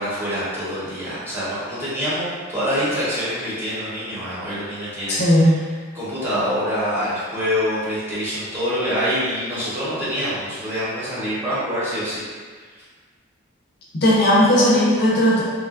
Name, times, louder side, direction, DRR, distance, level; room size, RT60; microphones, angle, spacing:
voice 1, 0.0-5.6 5.9-12.3, equal, 10° right, -11 dB, 0.7 m, -25 dB
voice 2, 5.1-5.6 13.9-15.4, equal, 50° left, -6 dB, 0.5 m, -16 dB
2.9 x 2.2 x 2.4 m, 1.5 s
head